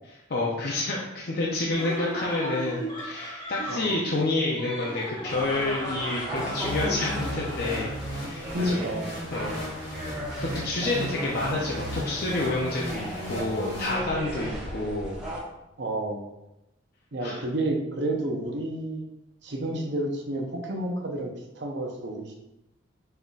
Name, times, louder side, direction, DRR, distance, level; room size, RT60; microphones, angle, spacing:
voice 1, 0.3-8.8 9.3-9.5 9.8-10.1 10.4-15.2 17.2-17.4, left 2 dB, 50° left, -4 dB, 0.6 m, -29 dB
Laughter, 1.7-8.1, right 1 dB, 20° left, 1.3 m, -36 dB
sound 1, 5.3-15.4, equal, 5° right, 1.0 m, -37 dB
sound 2, 6.4-14.5, equal, 65° left, 1.6 m, -35 dB
voice 2, 8.5-9.1 15.8-16.3 17.1-19.0 19.4-22.4, right 1 dB, 60° right, 2 dB, 0.7 m, -30 dB
5.5 x 3.8 x 2.4 m, 0.91 s
head